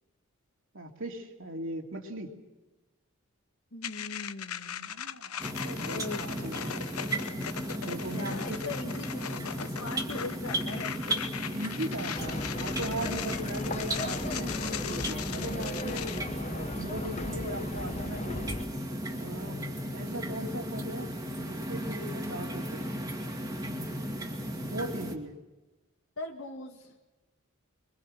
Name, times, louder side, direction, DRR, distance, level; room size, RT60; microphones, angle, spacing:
voice 1, 0.7-2.3 4.7-6.7 7.8-8.4 11.5-18.5 19.2-19.6 19.9-21.1 21.4-22.9 24.7-25.3, right 1 dB, 65° right, 2 dB, 2.8 m, -39 dB
voice 2, 3.7-4.9 5.8-6.5 8.1-11.3 26.2-27.0, left 2 dB, 70° left, -1 dB, 2.0 m, -41 dB
sound 1, 3.8-16.2, left 9 dB, 85° left, 0.8 m, -39 dB
sound 2, 5.4-25.1, right 1 dB, 15° right, 2.2 m, -35 dB
sound 3, 12.1-18.7, left 2 dB, 30° left, 0.8 m, -38 dB
26.0 x 23.5 x 6.2 m, 1.1 s
head